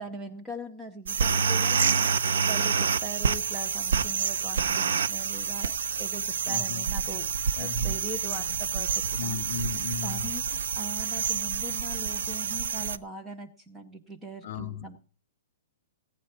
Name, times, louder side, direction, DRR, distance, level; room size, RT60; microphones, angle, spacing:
voice 1, 0.0-9.4 10.0-15.0, right 1 dB, 5° right, 7 dB, 0.7 m, -41 dB
sound 1, 1.0-13.0, right 6 dB, 80° right, 0.8 m, -28 dB
voice 2, 6.4-6.9 7.6-8.0 9.2-10.3 14.4-14.9, left 9 dB, 45° left, 6 dB, 2.5 m, -36 dB
18.0 x 9.4 x 4.4 m, 0.40 s
hypercardioid pair, 175°, 0 cm